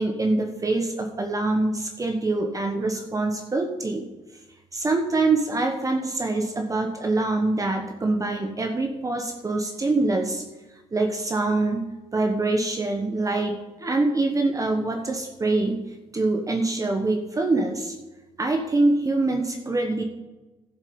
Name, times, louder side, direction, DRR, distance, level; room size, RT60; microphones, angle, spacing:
voice 1, 0.0-4.1 4.7-10.4 10.9-15.9 16.1-18.0 18.4-20.0, right 2 dB, 25° right, 4 dB, 1.0 m, -24 dB
12.5 x 7.3 x 5.2 m, 1.1 s
cardioid pair, 100°, 13 cm